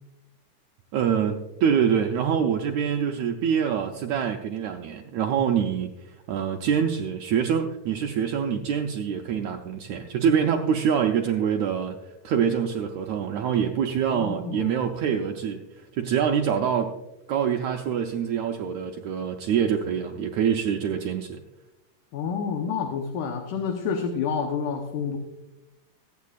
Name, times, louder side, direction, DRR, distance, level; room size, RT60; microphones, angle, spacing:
voice 1, 0.9-5.9 6.3-12.0 12.2-16.9 17.3-21.4, right 8 dB, 85° right, 3 dB, 1.6 m, -25 dB
voice 2, 14.1-14.7 22.1-25.2, left 6 dB, 70° left, 3 dB, 2.4 m, -29 dB
24.5 x 8.4 x 2.4 m, 0.96 s
omnidirectional pair, 4.1 m